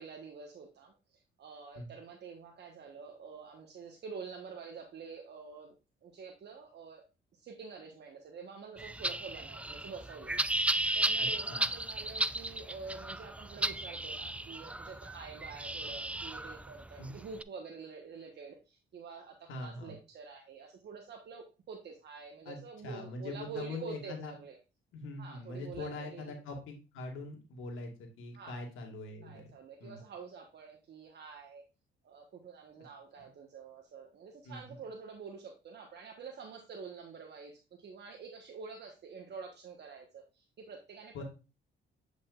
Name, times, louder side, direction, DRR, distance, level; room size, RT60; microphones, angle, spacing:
voice 1, 0.0-5.7 6.0-7.0 7.3-24.6 25.2-26.4 28.3-28.6 29.2-31.6 32.0-41.2, right 5 dB, 60° right, 2 dB, 1.3 m, -47 dB
sound 1, 8.8-17.4, right 1 dB, 5° right, 0.3 m, -35 dB
voice 2, 11.2-11.7 17.0-17.1 19.5-20.0 22.5-24.3 24.9-29.5 29.8-30.0 33.2-33.3 34.5-34.8 41.1-41.2, left 2 dB, 85° left, 3 dB, 2.0 m, -43 dB
8.4 x 5.3 x 2.4 m, 0.31 s
cardioid pair, 90°, 20 cm